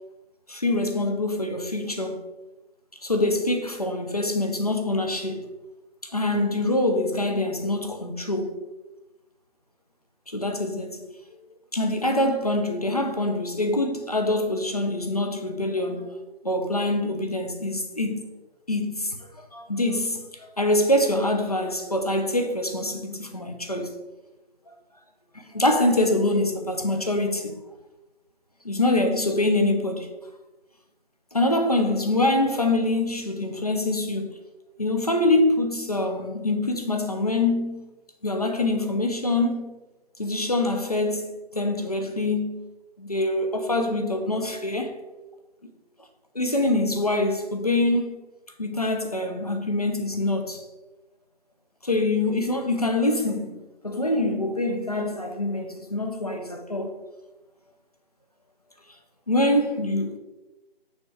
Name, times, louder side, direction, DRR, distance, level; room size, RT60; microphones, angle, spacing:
voice 1, 0.5-2.2 3.0-5.4 6.1-8.5 10.3-11.0 11.7-16.0 16.4-18.3 18.7-19.2 19.5-23.9 25.3-27.6 28.6-30.1 31.3-34.3 34.8-37.9 38.2-39.8 40.2-42.6 43.0-45.0 46.3-48.2 48.6-50.6 51.8-53.6 53.8-56.9 59.3-60.2, left 2 dB, 40° left, 0.7 m, -25 dB
6.4 x 4.4 x 4.5 m
figure-of-eight pair, 180°, 31 cm